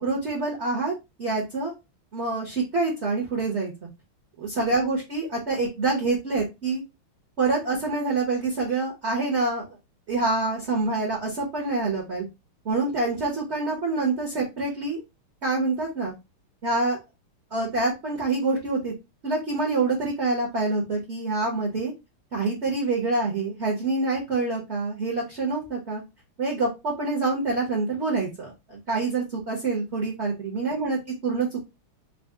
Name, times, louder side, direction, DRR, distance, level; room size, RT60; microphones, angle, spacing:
voice 1, 0.0-1.7 2.1-3.9 4.4-6.8 7.4-9.7 10.1-12.2 12.6-15.0 15.4-16.1 16.6-17.0 17.5-18.9 19.2-21.9 22.3-26.0 26.4-31.6, right 3 dB, 50° right, -2 dB, 0.8 m, -26 dB
4.0 x 2.0 x 3.5 m, 0.24 s
omnidirectional pair, 2.4 m